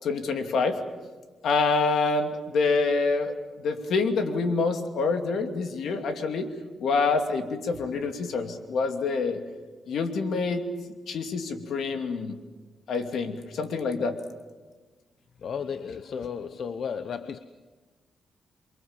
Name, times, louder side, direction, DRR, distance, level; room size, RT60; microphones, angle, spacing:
voice 1, 0.0-0.8 1.4-3.3 3.6-6.5 6.8-9.4 9.9-10.7 11.1-12.3 12.9-14.2, left 4 dB, 80° left, 2.6 m, -26 dB
voice 2, 15.4-17.4, left 6 dB, 60° left, 0.9 m, -34 dB
28.5 x 23.5 x 7.4 m
cardioid pair, 110°, 0 cm